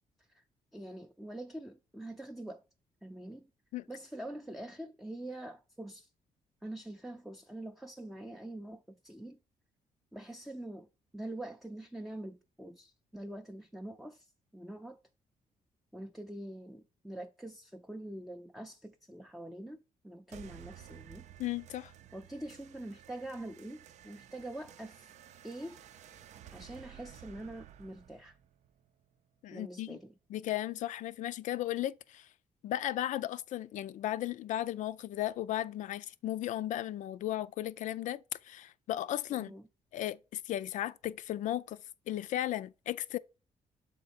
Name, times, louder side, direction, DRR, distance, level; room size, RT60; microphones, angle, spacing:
voice 1, 0.7-2.6 3.0-3.5 3.9-6.1 6.6-9.4 10.1-10.9 11.1-14.3 14.5-15.0 15.9-21.3 22.1-25.1 25.4-25.8 26.5-28.4 29.5-30.1 39.3-39.6, right 1 dB, ahead, 0.4 m, -45 dB
sound 1, 20.3-29.3, right 10 dB, 65° right, 0.5 m, -54 dB
voice 2, 21.4-21.9 29.4-30.0 30.3-32.3 32.6-39.5 39.9-41.8 42.1-43.2, left 13 dB, 75° left, 0.4 m, -35 dB
7.1 x 3.8 x 4.1 m
cardioid pair, 145°, 13 cm